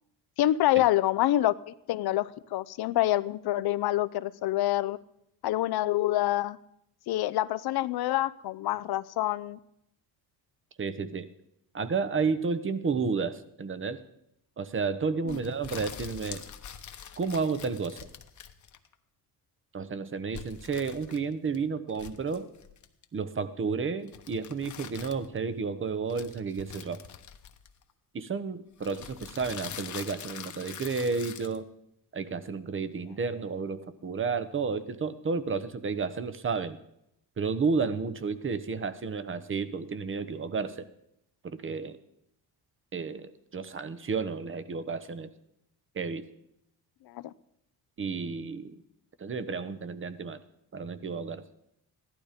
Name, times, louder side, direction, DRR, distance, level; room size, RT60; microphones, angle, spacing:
voice 1, 0.4-5.0 5.4-6.6 7.1-9.6 15.2-15.4 47.1-47.3, left 14 dB, 75° left, 17 dB, 0.7 m, -27 dB
voice 2, 10.8-11.3 11.7-14.0 14.6-16.4 17.2-18.0 19.7-22.5 23.1-27.0 28.1-31.7 32.1-36.8 37.4-40.8 41.4-42.0 42.9-45.3 45.9-46.2 48.0-48.8 49.2-50.4 50.7-51.4, right 5 dB, 30° right, 14 dB, 1.0 m, -31 dB
sound 1, 15.3-18.9 20.3-21.6 21.9-23.0 24.1-25.4 26.1-27.9 28.8-31.6, left 8 dB, 50° left, 1.1 m, -44 dB
15.5 x 12.0 x 5.1 m, 0.78 s
cardioid pair, 110°, 38 cm